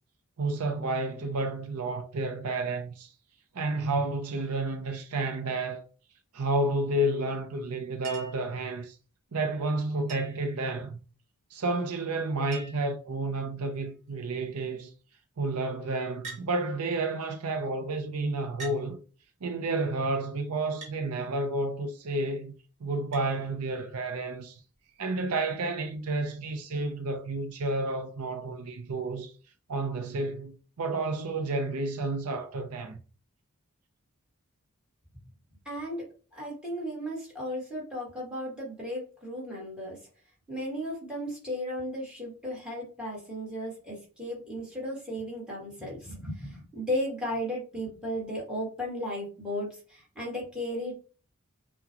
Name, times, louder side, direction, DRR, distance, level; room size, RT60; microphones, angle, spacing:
voice 1, 0.4-3.1 3.5-5.8 6.3-9.0 9.3-11.0 11.5-14.9 15.4-19.0 19.4-22.5 22.8-24.6 25.0-29.3 29.7-33.0, right 2 dB, 85° right, 0.6 m, -31 dB
Chink clink, 8.0-8.5 10.1-10.5 11.9-12.0 12.2-12.3 12.5-13.0 13.7-14.1 16.2-16.5 17.5-17.6 18.6-18.8 20.8-21.0 23.1-23.3 24.7-24.8, right 3 dB, 30° right, 1.6 m, -43 dB
voice 2, 35.6-36.1 36.3-40.0 40.5-50.9, equal, 5° right, 1.6 m, -35 dB
5.8 x 2.3 x 2.9 m
head